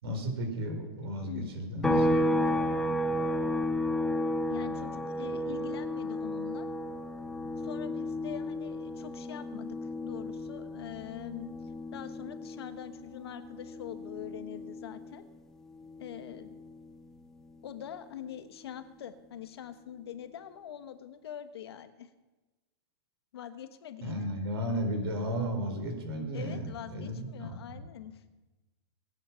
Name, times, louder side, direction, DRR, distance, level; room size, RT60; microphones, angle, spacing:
voice 1, 0.0-2.1 24.0-27.8, equal, 65° right, 4 dB, 4.2 m, -34 dB
sound 1, 1.8-15.4 15.7-17.9, left 1 dB, 5° left, 0.7 m, -33 dB
voice 2, 4.5-6.7 7.6-11.5 11.9-15.3 16.0-16.7 17.6-22.1 23.3-24.3 26.3-28.2, left 10 dB, 65° left, 10 dB, 1.3 m, -44 dB
21.5 x 9.5 x 5.8 m, 1.2 s
supercardioid pair, 180°, 14 cm